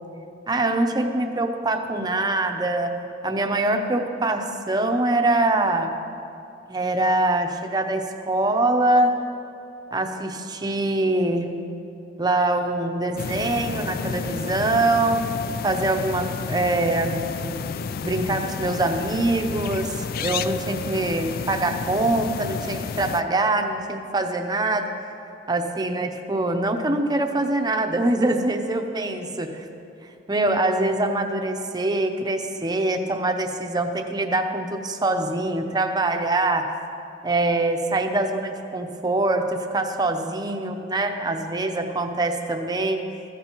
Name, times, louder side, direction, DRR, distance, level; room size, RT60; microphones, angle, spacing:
voice 1, 0.5-5.9 6.7-9.3 9.9-11.6 12.2-17.7 18.0-25.0 25.5-29.6 30.3-36.7 37.2-43.1, right 2 dB, 20° right, 5 dB, 0.7 m, -24 dB
sound 1, 13.2-23.2, left 6 dB, 50° left, 0.3 m, -31 dB
15.0 x 13.5 x 3.0 m, 2.6 s
head